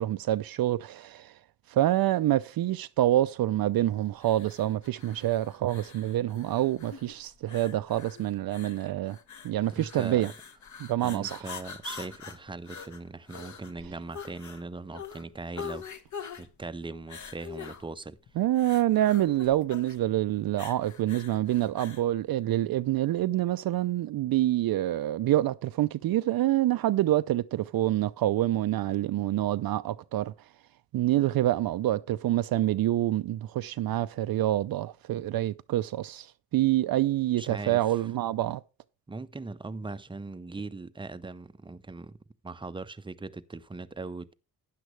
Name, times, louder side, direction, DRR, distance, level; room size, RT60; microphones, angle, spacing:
voice 1, 0.0-1.3 1.7-9.2 9.4-10.3 10.8-11.4 18.4-30.3 30.9-38.6, right 14 dB, 60° right, 0.5 m, -27 dB
sound 1, 4.2-22.1, left 6 dB, 45° left, 1.3 m, -45 dB
voice 2, 9.7-10.2 11.0-15.8 16.4-18.2 37.3-38.0 39.1-42.2 42.4-44.3, right 3 dB, 10° right, 0.6 m, -40 dB
12.5 x 9.4 x 3.2 m
cardioid pair, 105°, 40 cm